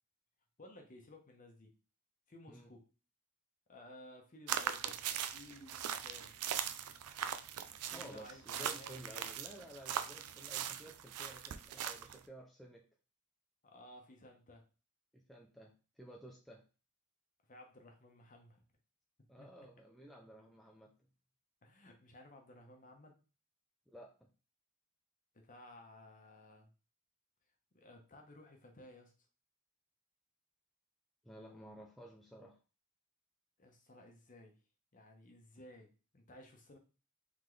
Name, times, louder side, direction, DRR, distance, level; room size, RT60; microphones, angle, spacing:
voice 1, 0.6-1.7 2.3-2.8 3.7-5.0 5.3-6.3 7.9-9.1 13.6-14.6 17.5-18.6 19.4-19.5 21.6-23.1 25.3-26.7 27.7-29.1 33.6-34.6 34.9-36.8, left 1 dB, 35° left, 3 dB, 0.9 m, -56 dB
sound 1, 4.5-12.2, right 9 dB, 85° right, 0.4 m, -40 dB
voice 2, 7.9-12.9 15.1-16.6 19.3-20.9 23.9-24.3 31.2-32.6, right 1 dB, ahead, -1 dB, 0.4 m, -54 dB
3.9 x 3.6 x 3.2 m, 0.34 s
head